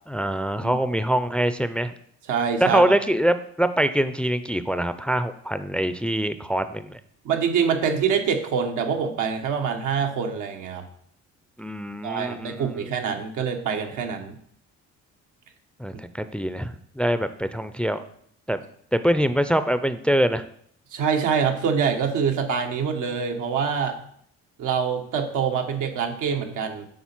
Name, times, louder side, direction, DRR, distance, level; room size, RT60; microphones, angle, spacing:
voice 1, 0.1-1.9 2.6-7.0 11.6-12.9 15.8-18.0 18.5-18.6 18.9-20.4, right 1 dB, 5° left, 11 dB, 0.4 m, -24 dB
voice 2, 2.3-2.8 7.2-10.9 12.0-14.4 20.9-24.0 24.6-26.9, right 6 dB, 90° right, 3 dB, 1.1 m, -25 dB
7.1 x 4.0 x 5.9 m, 0.65 s
cardioid pair, 90°, 30 cm